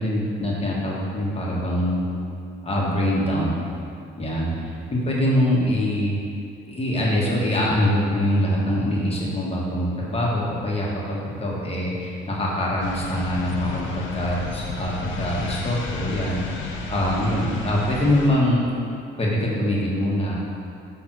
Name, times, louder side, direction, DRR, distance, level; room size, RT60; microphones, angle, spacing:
voice 1, 0.0-2.0 2.6-3.5 4.2-6.2 6.7-18.6 19.2-20.3, left 1 dB, 30° left, -5 dB, 1.5 m, -24 dB
sound 1, 12.8-18.3, left 2 dB, 75° left, 0.9 m, -32 dB
6.1 x 3.5 x 6.1 m, 2.4 s
cardioid pair, 90°, 20 cm